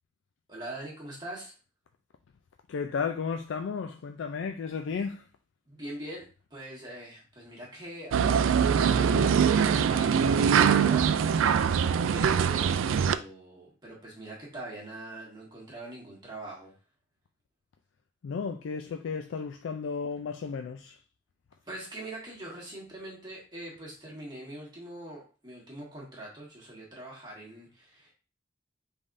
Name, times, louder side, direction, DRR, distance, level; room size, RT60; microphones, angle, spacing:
voice 1, 0.5-1.5 5.7-11.8 12.1-16.7 21.7-28.1, right 1 dB, 20° right, 1.4 m, -43 dB
voice 2, 2.7-5.3 18.2-21.0, left 5 dB, 75° left, 0.3 m, -33 dB
sound 1, 8.1-13.1, right 7 dB, 85° right, 0.3 m, -23 dB
5.4 x 3.5 x 2.5 m
head